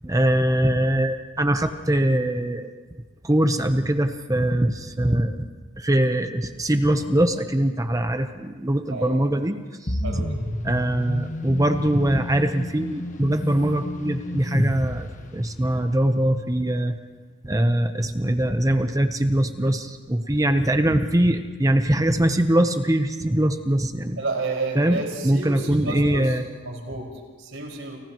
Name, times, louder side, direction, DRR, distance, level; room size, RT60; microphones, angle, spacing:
voice 1, 0.0-2.7 3.2-5.4 5.8-9.6 9.8-10.0 10.6-17.0 17.4-24.2 24.7-26.4, right 1 dB, 15° right, 7 dB, 0.9 m, -22 dB
voice 2, 8.9-9.2 10.0-10.4 24.2-26.4 26.6-28.0, right 3 dB, 70° right, 0 dB, 5.5 m, -31 dB
sound 1, 9.9-15.8, left 1 dB, 40° left, 1.4 m, -30 dB
30.0 x 29.5 x 3.1 m, 1.5 s
head